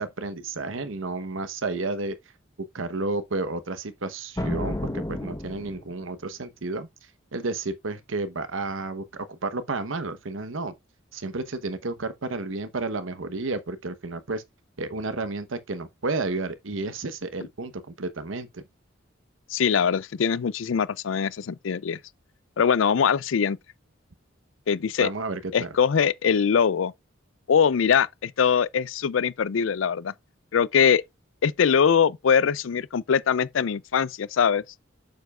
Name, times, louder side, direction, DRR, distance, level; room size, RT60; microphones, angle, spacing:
voice 1, 0.0-2.2 2.7-4.8 5.1-6.9 7.3-10.7 11.1-14.4 14.8-18.6 25.0-25.7, right 3 dB, 80° right, 1.0 m, -31 dB
sound 1, 4.4-6.1, left 1 dB, 20° left, 1.0 m, -31 dB
voice 2, 19.5-22.0 22.6-23.6 24.7-25.1 25.5-26.9 27.5-30.1 30.5-31.0 31.4-34.6, left 7 dB, 75° left, 0.4 m, -22 dB
7.8 x 7.0 x 2.4 m
head